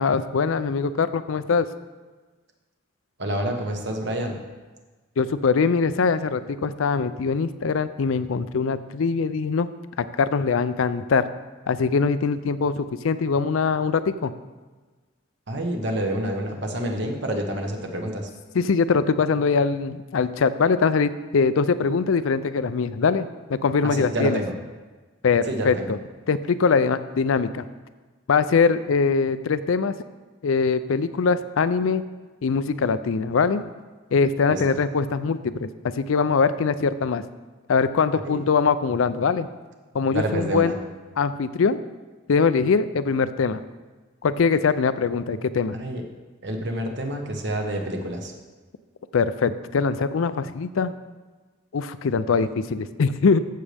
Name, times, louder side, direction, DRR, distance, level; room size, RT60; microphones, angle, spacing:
voice 1, 0.0-1.7 5.2-9.7 10.0-11.3 11.7-14.3 18.5-24.4 25.2-26.0 26.3-27.6 28.3-29.9 30.4-32.0 32.4-33.6 34.1-35.7 36.0-37.2 37.7-39.5 39.9-40.7 41.2-41.8 42.3-43.6 44.2-45.8 49.1-50.9 51.7-53.4, left 5 dB, 75° left, 13 dB, 0.4 m, -22 dB
voice 2, 3.2-4.4 15.5-18.3 23.8-24.5 25.5-25.9 34.5-34.8 38.2-38.4 40.1-40.7 45.7-46.0 46.4-48.3, right 1 dB, 55° right, 3 dB, 1.2 m, -28 dB
14.5 x 6.5 x 3.4 m, 1.3 s
head